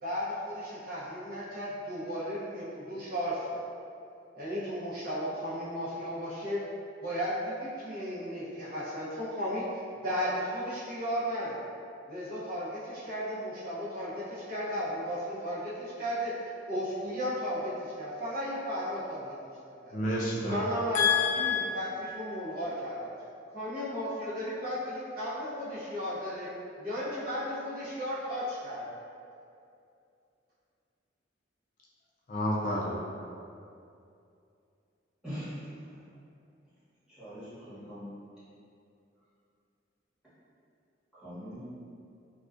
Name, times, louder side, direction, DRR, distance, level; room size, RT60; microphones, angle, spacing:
voice 1, 0.0-3.6 4.4-6.6 7.0-9.7 10.0-11.6 12.1-20.0 20.4-23.1 23.5-26.5 26.8-28.8, equal, 50° right, -10 dB, 0.6 m, -34 dB
voice 2, 19.9-20.7 20.9-21.6 32.3-33.0, left 4 dB, 45° left, -5 dB, 0.3 m, -28 dB
voice 3, 37.2-38.2 41.1-41.6, equal, 5° right, -15 dB, 1.0 m, -42 dB
2.3 x 2.2 x 2.4 m, 2.6 s
head